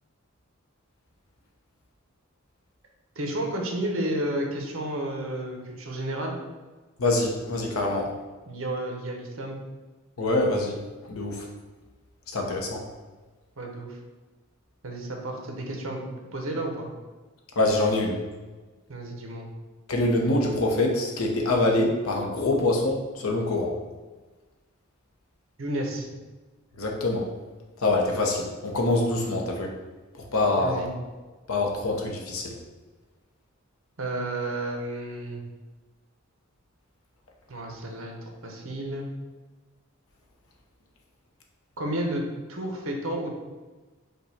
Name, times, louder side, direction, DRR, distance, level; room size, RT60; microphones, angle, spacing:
voice 1, 3.2-6.4 7.8-7.9 8.5-9.6 13.6-14.0 14.8-16.1 16.3-16.9 18.9-19.5 25.6-26.1 30.5-30.9 34.0-35.4 37.5-39.1 41.8-42.2 42.5-43.4, right 1 dB, 70° right, 1 dB, 0.8 m, -31 dB
voice 2, 7.0-8.1 10.2-10.8 11.1-11.5 12.3-12.8 17.6-18.2 19.9-23.7 26.8-27.3 27.8-29.7 30.3-30.8 31.5-32.5, left 2 dB, 85° left, 1 dB, 0.8 m, -25 dB
5.3 x 2.3 x 4.1 m, 1.3 s
head